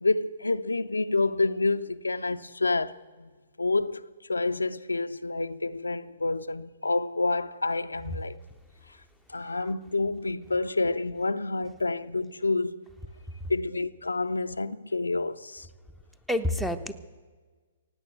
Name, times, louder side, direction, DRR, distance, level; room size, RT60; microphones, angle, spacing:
voice 1, 0.0-3.3 3.6-4.0 4.3-8.4 9.3-12.8 13.5-15.7, left 3 dB, 85° left, 0.4 m, -28 dB
voice 2, 16.3-16.9, left 1 dB, ahead, 0.7 m, -29 dB
16.0 x 9.3 x 7.9 m
figure-of-eight pair, 120°, 0 cm